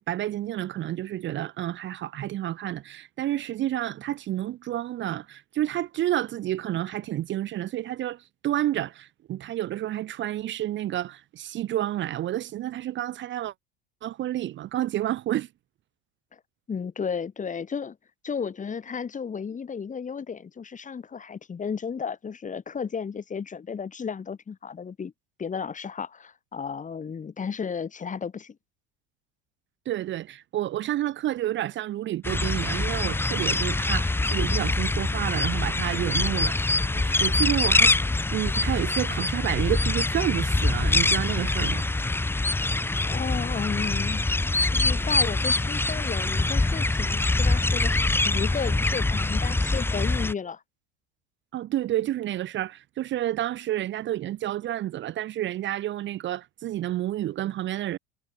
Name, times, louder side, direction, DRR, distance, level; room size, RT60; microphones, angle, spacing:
voice 1, 0.0-13.5 14.0-15.5 29.8-36.6 36.9-37.9 38.3-41.9 51.5-58.0, right 13 dB, 40° right, 1.4 m, -30 dB
voice 2, 16.7-18.0 18.2-25.1 25.4-28.6 43.1-44.2 44.7-50.6, left 6 dB, 25° left, 5.1 m, -33 dB
sound 1, 32.2-50.3, left 2 dB, 5° left, 1.1 m, -24 dB
figure-of-eight pair, 70°, 31 cm